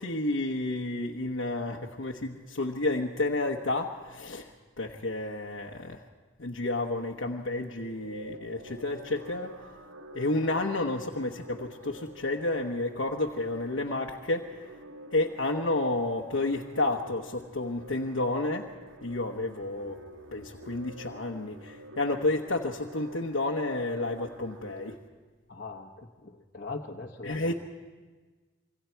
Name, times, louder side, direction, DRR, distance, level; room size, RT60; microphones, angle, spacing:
voice 1, 0.0-6.0 6.4-9.7 10.1-14.6 15.1-18.7 19.0-20.0 20.3-25.0 27.2-27.5, left 2 dB, 90° left, 1 dB, 1.1 m, -31 dB
sound 1, 7.8-24.9, right 1 dB, 85° right, 1.8 m, -48 dB
voice 2, 25.5-27.5, left 3 dB, 45° left, -1 dB, 1.1 m, -41 dB
26.5 x 24.0 x 4.6 m, 1.4 s
head